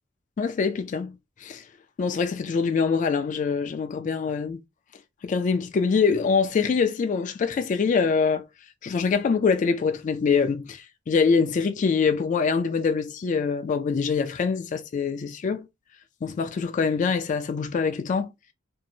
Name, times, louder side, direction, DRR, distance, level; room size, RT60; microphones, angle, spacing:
voice 1, 0.4-1.2 1.4-1.6 2.0-4.6 5.2-8.5 8.8-15.7 16.2-18.3, left 5 dB, 40° left, 0.3 m, -24 dB
2.7 x 2.0 x 2.6 m
head